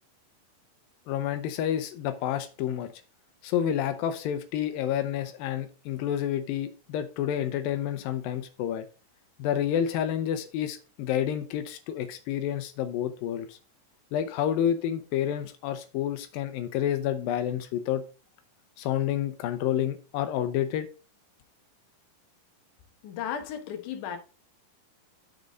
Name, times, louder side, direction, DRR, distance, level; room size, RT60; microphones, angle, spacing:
voice 1, 1.1-2.9 3.4-8.8 9.4-13.6 14.1-18.0 18.8-20.9, left 10 dB, 85° left, 2.5 m, -29 dB
voice 2, 23.0-24.2, left 8 dB, 70° left, 2.4 m, -34 dB
12.0 x 4.0 x 3.6 m
omnidirectional pair, 4.0 m